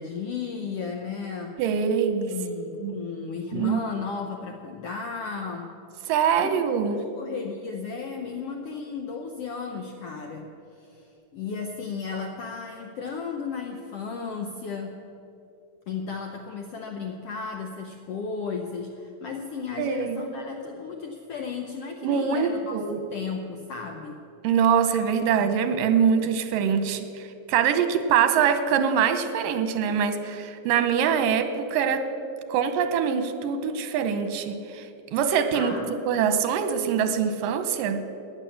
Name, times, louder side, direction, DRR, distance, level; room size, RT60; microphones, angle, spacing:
voice 1, 0.0-1.6 2.3-5.7 6.4-6.6 6.9-15.0 15.9-22.8 23.1-24.2 26.9-27.0 35.5-35.9, left 5 dB, 75° left, 3 dB, 1.4 m, -34 dB
voice 2, 1.6-2.3 2.8-3.0 3.5-3.8 6.1-7.0 19.8-20.2 22.0-23.0 24.4-32.0 32.5-35.7 36.1-38.0, right 7 dB, 85° right, 9 dB, 2.6 m, -24 dB
17.5 x 10.0 x 7.1 m, 2.8 s
omnidirectional pair, 3.8 m